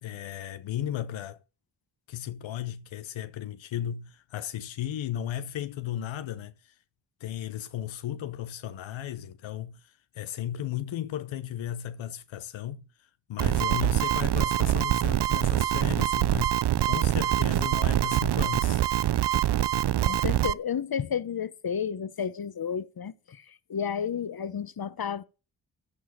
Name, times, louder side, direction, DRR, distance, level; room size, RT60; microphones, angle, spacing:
voice 1, 0.0-1.4 2.1-6.8 7.2-18.8, left 11 dB, 90° left, 0.8 m, -35 dB
sound 1, 13.4-20.5, right 12 dB, 60° right, 0.6 m, -24 dB
voice 2, 20.0-25.2, left 7 dB, 50° left, 1.1 m, -32 dB
14.0 x 4.7 x 6.7 m
supercardioid pair, 40°, 45 cm